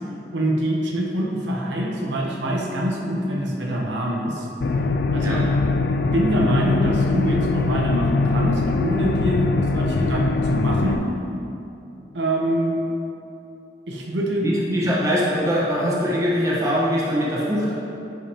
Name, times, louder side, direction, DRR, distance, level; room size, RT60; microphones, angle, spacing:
voice 1, 0.3-4.5 5.1-5.5 5.9-11.1 12.1-12.8 13.9-14.8, right 1 dB, 80° right, -1 dB, 0.9 m, -25 dB
sound 1, 4.6-11.0, left 3 dB, 60° left, 0.3 m, -22 dB
voice 2, 14.4-17.7, equal, 15° right, -6 dB, 1.1 m, -22 dB
10.5 x 5.1 x 2.9 m, 2.7 s
head